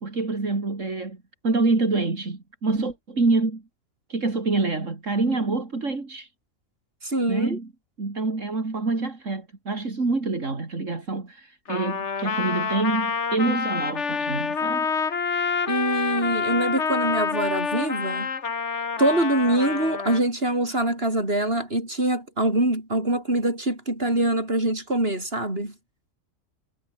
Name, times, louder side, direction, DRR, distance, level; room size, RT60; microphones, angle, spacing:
voice 1, 0.0-3.6 4.1-6.3 7.3-7.7 8.0-14.9, right 3 dB, 65° right, 3.7 m, -26 dB
voice 2, 7.0-7.6 15.7-18.3 19.0-25.7, right 1 dB, 45° right, 7.7 m, -24 dB
Trumpet, 11.7-20.2, left 5 dB, 60° left, 2.0 m, -27 dB
omnidirectional pair, 1.4 m